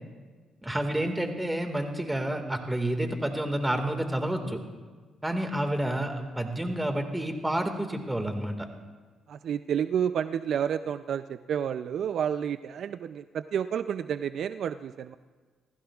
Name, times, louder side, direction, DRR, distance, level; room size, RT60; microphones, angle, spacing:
voice 1, 0.6-4.6 5.2-8.7, right 1 dB, 10° right, 5 dB, 1.8 m, -29 dB
voice 2, 9.3-15.2, right 8 dB, 65° right, 12 dB, 0.4 m, -30 dB
28.0 x 15.0 x 2.4 m, 1.4 s
cardioid pair, 90°, 0 cm